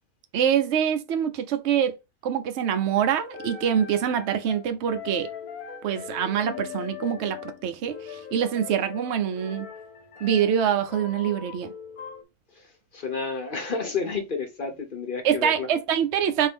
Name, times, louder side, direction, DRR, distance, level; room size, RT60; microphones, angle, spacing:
voice 1, 0.3-1.9 2.2-5.3 5.8-9.7 10.2-11.7 15.2-16.5, right 8 dB, 80° right, 0.6 m, -25 dB
sound 1, 2.8-12.2, left 8 dB, 65° left, 1.0 m, -41 dB
voice 2, 12.9-15.7, left 4 dB, 50° left, 0.6 m, -30 dB
4.6 x 2.7 x 3.4 m
omnidirectional pair, 1.9 m